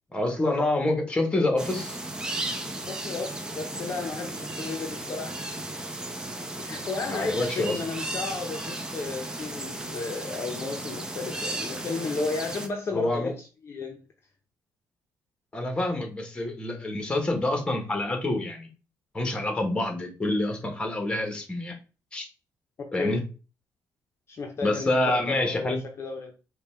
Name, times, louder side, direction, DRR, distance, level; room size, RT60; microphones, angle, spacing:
voice 1, 0.1-2.0 7.1-7.8 12.9-13.3 15.5-18.7 19.1-21.8 22.1-22.3 22.9-23.2 24.6-25.8, left 2 dB, 15° left, 1.0 m, -27 dB
sound 1, 1.6-12.7, right 1 dB, 10° right, 0.5 m, -35 dB
voice 2, 2.9-5.4 6.6-14.0 22.8-23.2 24.3-26.3, left 4 dB, 35° left, 0.7 m, -34 dB
5.2 x 2.3 x 4.2 m
cardioid pair, 160°, 7 cm